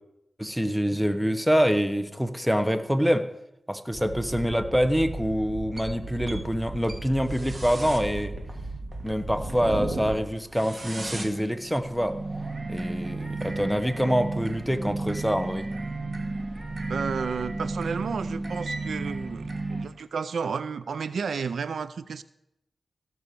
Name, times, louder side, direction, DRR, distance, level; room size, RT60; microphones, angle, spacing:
voice 1, 0.4-3.3 3.7-8.4 9.0-12.2 12.7-15.7, equal, ahead, 9 dB, 1.2 m, -25 dB
sound 1, 3.9-19.9, right 2 dB, 45° right, 2.1 m, -34 dB
voice 2, 16.9-22.2, right 5 dB, 90° right, 15 dB, 0.4 m, -32 dB
16.0 x 6.3 x 6.9 m, 0.84 s
cardioid pair, 45°, 0 cm